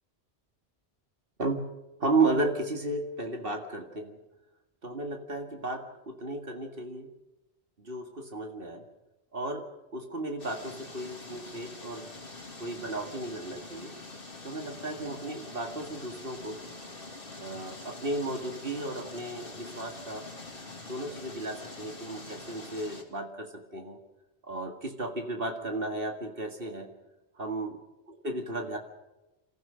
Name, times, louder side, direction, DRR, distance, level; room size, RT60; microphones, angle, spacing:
voice 1, 2.0-4.2 4.8-7.1 7.8-8.9 9.3-12.1 12.6-13.9 14.4-16.6 17.4-20.3 20.9-24.0 24.4-26.9 27.4-27.8 28.1-28.8, right 2 dB, 55° right, 4 dB, 2.2 m, -34 dB
sound 1, 10.4-23.0, left 3 dB, 55° left, 3.0 m, -45 dB
27.5 x 14.5 x 6.4 m, 1.0 s
omnidirectional pair, 1.1 m